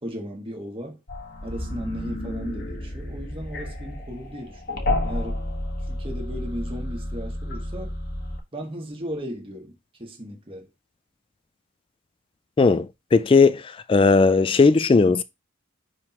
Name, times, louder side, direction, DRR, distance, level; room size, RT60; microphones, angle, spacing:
voice 1, 0.0-1.0 1.4-5.4 5.9-7.9 8.5-10.7, equal, 25° right, 1.7 m, -36 dB
sound 1, 1.1-8.4, left 1 dB, 50° left, 1.3 m, -31 dB
voice 2, 12.6-13.6 13.9-15.2, left 4 dB, 25° left, 0.3 m, -17 dB
9.8 x 3.8 x 2.9 m
head